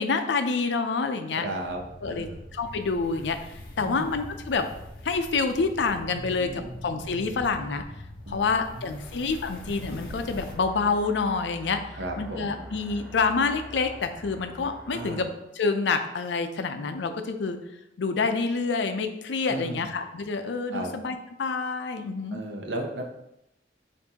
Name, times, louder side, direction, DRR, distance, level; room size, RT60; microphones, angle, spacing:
voice 1, 0.0-1.5 2.0-2.3 2.5-3.4 3.8-4.7 5.0-7.8 8.3-11.8 12.2-15.3 15.6-17.6 18.0-22.4, left 4 dB, 85° left, 8 dB, 0.5 m, -27 dB
voice 2, 1.3-2.5 3.8-4.2 6.4-6.7 8.3-9.3 11.9-12.6 14.9-15.3 19.4-19.9 20.7-20.9 22.3-23.0, right 1 dB, 80° right, 2 dB, 0.7 m, -36 dB
sound 1, 1.6-10.5, left 1 dB, 55° left, 0.7 m, -43 dB
sound 2, 8.9-15.2, left 1 dB, 5° left, 0.5 m, -44 dB
6.8 x 2.6 x 2.8 m, 0.84 s
head